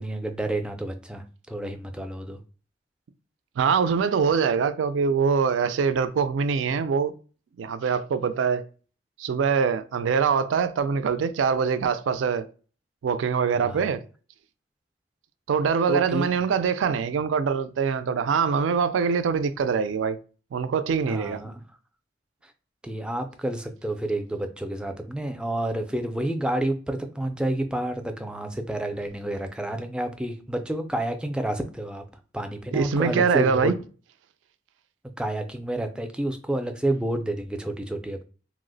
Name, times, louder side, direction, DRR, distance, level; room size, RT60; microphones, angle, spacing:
voice 1, 0.0-2.4 13.5-13.9 15.9-16.3 21.0-21.6 22.8-32.0 32.3-33.7 35.2-38.2, right 1 dB, 5° right, 0.3 m, -29 dB
voice 2, 3.6-7.1 7.6-8.7 9.2-12.5 13.0-14.0 15.5-20.2 20.5-21.4 32.7-33.7, right 6 dB, 85° right, 0.3 m, -23 dB
2.8 x 2.0 x 3.8 m
head